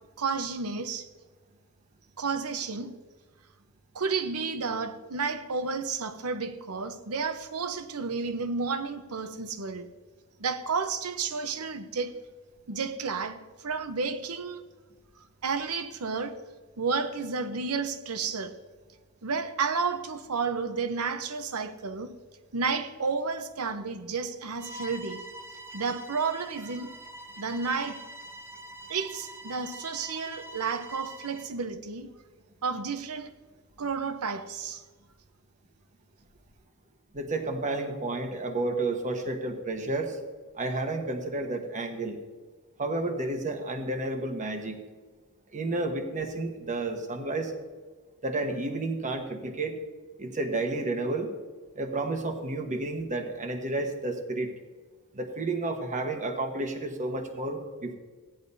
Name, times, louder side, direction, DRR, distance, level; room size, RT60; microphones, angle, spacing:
voice 1, 0.2-1.1 2.2-3.0 3.9-9.9 10.4-12.3 12.7-14.6 15.4-16.4 16.8-18.6 19.2-22.1 22.5-25.2 25.7-26.9 27.4-28.0 28.9-32.1 32.6-33.3 33.8-34.8, right 5 dB, 80° right, 0.9 m, -31 dB
Bowed string instrument, 24.6-31.5, right 1 dB, 10° right, 0.5 m, -44 dB
voice 2, 37.1-40.2 40.6-42.2 42.8-44.8 45.5-47.5 48.2-49.8 50.2-51.3 51.7-54.5 55.1-57.9, right 2 dB, 35° right, 1.2 m, -31 dB
16.0 x 10.5 x 2.7 m
head